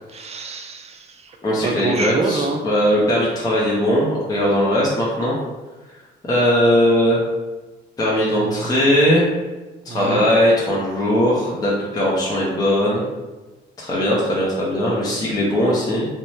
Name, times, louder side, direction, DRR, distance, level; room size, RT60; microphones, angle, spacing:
voice 1, 0.1-1.4 1.6-2.6 8.3-8.8 9.9-10.3, right 4 dB, 35° right, 4 dB, 0.4 m, -27 dB
voice 2, 1.4-5.4 6.2-7.2 8.0-9.3 9.8-13.0 13.8-16.1, equal, 20° left, -6 dB, 0.6 m, -19 dB
2.7 x 2.1 x 3.2 m, 1.2 s
cardioid pair, 90°, 20 cm